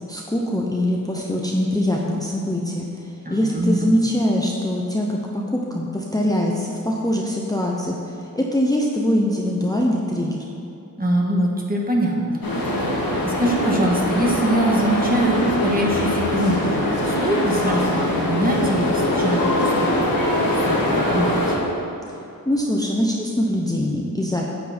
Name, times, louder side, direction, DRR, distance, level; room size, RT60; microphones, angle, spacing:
voice 1, 0.1-2.9 3.3-8.0 8.4-10.4 22.5-24.5, left 1 dB, 10° left, -2 dB, 0.8 m, -22 dB
voice 2, 3.2-3.9 11.0-21.4, right 1 dB, 25° right, -2 dB, 1.6 m, -23 dB
sound 1, 12.4-21.6, left 1 dB, 85° left, 2.0 m, -22 dB
9.2 x 8.1 x 4.3 m, 2.8 s
wide cardioid pair, 70°, 34 cm